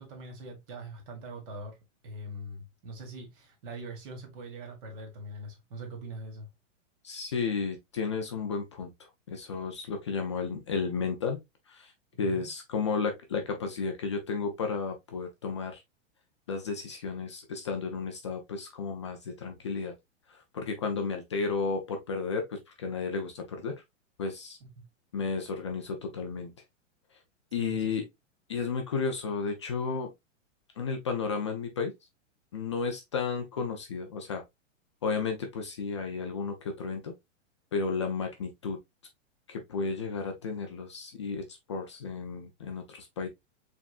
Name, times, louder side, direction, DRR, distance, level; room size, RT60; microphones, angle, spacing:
voice 1, 0.0-1.8 2.0-6.5 12.1-12.5 24.6-24.9 27.6-28.0, right 2 dB, 45° right, 2.0 m, -42 dB
voice 2, 7.0-8.9 9.3-11.4 11.7-11.9 12.2-15.8 16.5-19.9 20.3-23.7 24.2-24.6 25.1-26.5 27.5-28.0 28.5-30.1 30.8-31.9 32.5-34.4 35.0-37.1 37.7-38.8 39.5-43.3, left 5 dB, 25° left, 0.3 m, -33 dB
4.8 x 3.5 x 2.4 m
supercardioid pair, 165°, 38 cm